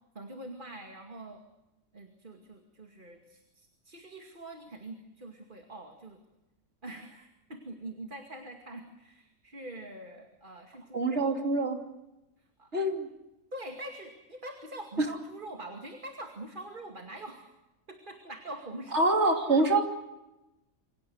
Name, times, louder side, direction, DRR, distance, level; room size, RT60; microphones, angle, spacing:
voice 1, 0.1-1.4 1.9-6.2 6.8-11.5 12.6-12.7 13.5-17.5 17.9-19.8, right 1 dB, 40° right, 3 dB, 2.5 m, -44 dB
voice 2, 10.9-11.8 12.7-13.1 18.9-19.8, right 2 dB, 55° right, 3 dB, 3.3 m, -25 dB
27.5 x 25.0 x 8.0 m, 0.98 s
omnidirectional pair, 1.4 m